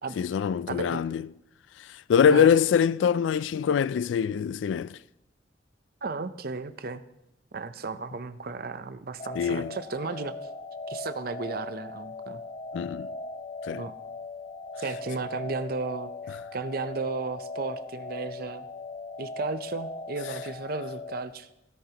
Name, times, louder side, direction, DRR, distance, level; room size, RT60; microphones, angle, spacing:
voice 1, 0.2-1.2 1.8-5.0 9.4-9.7 12.7-13.1 13.6-13.8, left 7 dB, 85° left, 0.3 m, -24 dB
voice 2, 0.7-1.2 2.3-2.5 6.0-7.0 7.5-10.5 10.9-12.4 13.7-14.0 14.8-18.7 19.2-21.5, right 4 dB, 55° right, 0.6 m, -34 dB
sound 1, 9.2-21.2, left 3 dB, 35° left, 0.8 m, -39 dB
17.0 x 9.0 x 2.9 m
head